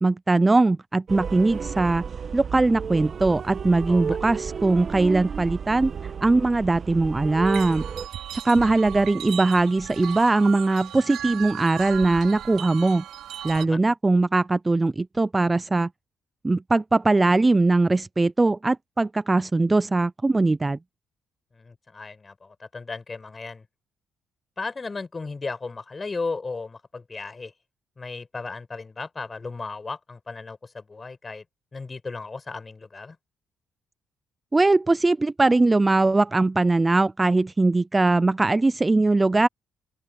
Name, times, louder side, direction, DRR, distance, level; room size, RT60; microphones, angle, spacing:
voice 1, 0.0-2.0 2.3-5.9 6.2-7.8 8.3-13.0 13.4-15.9 16.4-20.8 34.5-39.5, right 2 dB, 20° right, 0.3 m, -21 dB
sound 1, 1.1-8.1, right 6 dB, 45° right, 1.3 m, -33 dB
sound 2, 7.4-13.7, right 11 dB, 80° right, 3.6 m, -36 dB
voice 2, 21.5-23.7 24.6-27.5 28.0-31.4 31.7-33.2, left 4 dB, 30° left, 5.1 m, -35 dB
open air
cardioid pair, 90°, 0 cm